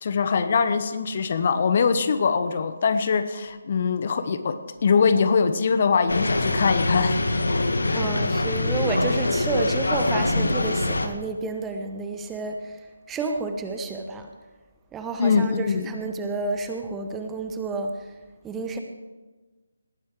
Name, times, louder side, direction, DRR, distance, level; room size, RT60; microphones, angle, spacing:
voice 1, 0.0-4.6 4.8-7.2 15.2-15.9, left 5 dB, 40° left, 11 dB, 1.0 m, -22 dB
sound 1, 6.1-11.1, left 2 dB, 70° left, 1.5 m, -24 dB
voice 2, 7.9-12.8 13.1-14.3 14.9-18.1 18.4-18.8, right 3 dB, 10° right, 5 dB, 0.9 m, -30 dB
19.0 x 10.5 x 4.9 m, 1.2 s
figure-of-eight pair, 150°, 0 cm